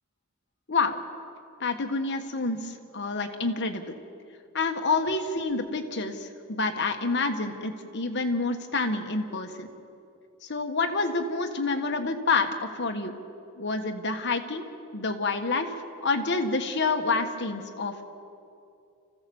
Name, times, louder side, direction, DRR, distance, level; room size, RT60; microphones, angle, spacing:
voice 1, 0.7-1.0 1.6-3.9 4.5-9.7 10.5-12.5 12.7-13.1 13.6-14.7 14.9-15.7 16.0-18.0, left 3 dB, 55° left, 6 dB, 1.4 m, -28 dB
26.0 x 15.5 x 7.1 m, 2.6 s
head